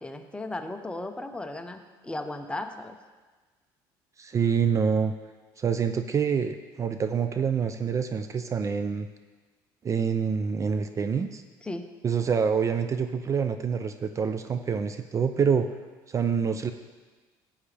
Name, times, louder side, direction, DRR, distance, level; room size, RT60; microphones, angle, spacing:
voice 1, 0.0-3.0 11.6-11.9, left 2 dB, 10° left, 6 dB, 0.9 m, -36 dB
voice 2, 4.2-5.1 5.6-9.1 9.8-11.4 12.0-15.7 16.1-16.7, right 6 dB, 35° right, 8 dB, 0.5 m, -26 dB
14.5 x 8.6 x 3.4 m, 1.3 s
supercardioid pair, 100°, 10 cm